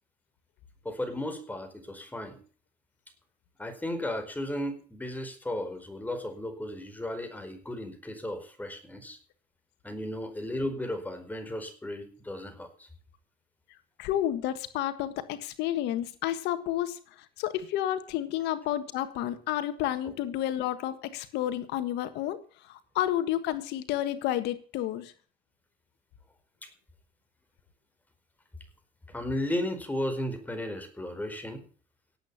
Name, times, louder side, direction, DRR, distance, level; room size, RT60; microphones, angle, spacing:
voice 1, 0.8-2.4 3.6-9.2 9.8-12.9 26.6-26.7 29.1-31.6, left 1 dB, 10° left, 6 dB, 4.8 m, -35 dB
voice 2, 14.0-25.1, left 12 dB, 90° left, 11 dB, 1.6 m, -31 dB
18.0 x 8.5 x 7.1 m, 0.42 s
cardioid pair, 110°, 17 cm